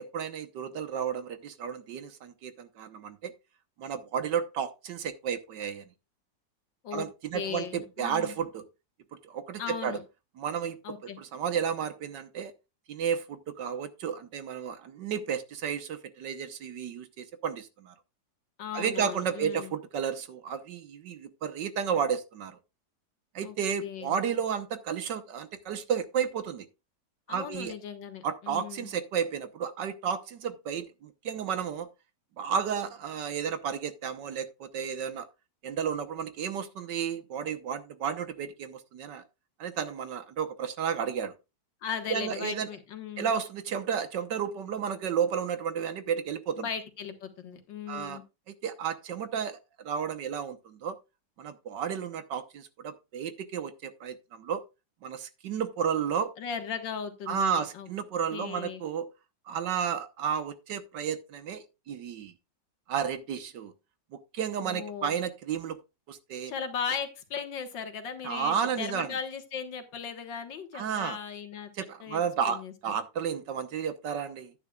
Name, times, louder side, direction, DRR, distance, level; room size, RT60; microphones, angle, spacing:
voice 1, 0.0-3.3 3.8-5.9 6.9-8.6 9.2-10.0 10.4-12.5 12.9-17.9 18.7-22.6 23.4-26.7 27.3-27.7 28.2-31.9 32.4-35.3 35.6-39.2 39.6-41.3 42.1-42.7 43.2-46.7 47.9-48.2 48.6-51.0 51.4-54.6 55.0-56.3 57.3-59.1 59.5-62.3 62.9-63.7 64.1-65.8 66.1-66.5 68.2-69.1 70.7-71.2 71.7-74.5, right 7 dB, 75° right, 1.6 m, -32 dB
voice 2, 7.3-8.3 9.6-10.0 10.8-11.2 18.6-19.7 23.4-23.6 23.8-24.2 27.3-28.9 41.8-43.3 46.6-48.2 56.4-57.9 58.3-58.8 64.6-65.1 66.5-71.7 72.0-72.2 72.5-72.7, left 7 dB, 80° left, 2.2 m, -37 dB
11.0 x 9.9 x 2.3 m
omnidirectional pair, 2.0 m